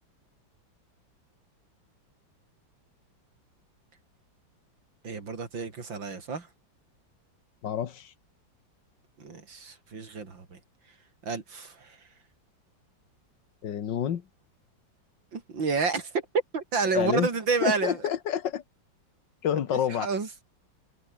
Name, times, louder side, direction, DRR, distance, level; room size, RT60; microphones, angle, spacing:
voice 1, 5.0-6.5 9.2-10.6 11.2-12.0 15.3-16.3 16.5-18.0 19.7-20.3, right 4 dB, 70° right, 4.0 m, -30 dB
voice 2, 7.6-8.1 13.6-14.2 17.0-17.3 17.6-18.6 19.4-20.1, left 9 dB, 65° left, 2.0 m, -28 dB
open air
omnidirectional pair, 2.1 m